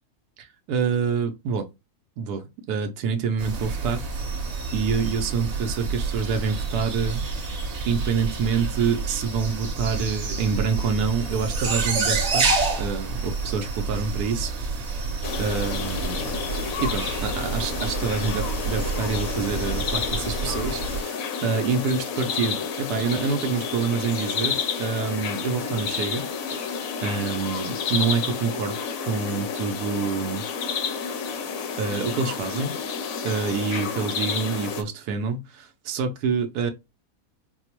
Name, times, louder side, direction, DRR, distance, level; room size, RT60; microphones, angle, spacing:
voice 1, 0.4-1.7 2.2-4.0 4.7-7.2 7.8-12.5 12.8-15.0 15.4-16.2 16.8-26.2 26.5-28.8 29.1-30.4 31.2-31.4 31.8-32.7 33.2-36.7, right 5 dB, 85° right, 1.1 m, -27 dB
sound 1, 3.4-21.0, right 4 dB, 45° right, 1.4 m, -29 dB
sound 2, 15.2-34.8, left 6 dB, 70° left, 1.0 m, -30 dB
4.2 x 2.0 x 2.9 m
omnidirectional pair, 1.6 m